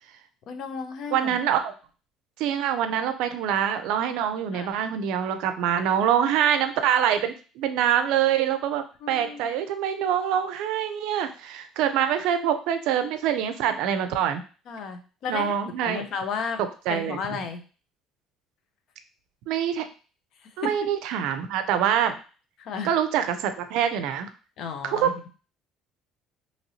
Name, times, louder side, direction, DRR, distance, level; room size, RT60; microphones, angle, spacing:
voice 1, 0.5-1.4 4.5-4.8 9.0-9.5 14.7-15.5 15.8-16.6 16.9-17.6 20.4-20.9 22.6-22.9 24.6-25.3, left 5 dB, 65° left, 6 dB, 0.5 m, -33 dB
voice 2, 1.1-1.7 2.4-14.4 15.3-16.1 16.9-17.2 19.5-19.9 20.6-22.1 22.8-24.3 24.8-25.3, right 9 dB, 75° right, 9 dB, 0.4 m, -25 dB
2.9 x 2.7 x 2.8 m, 0.37 s
supercardioid pair, 85°, 0 cm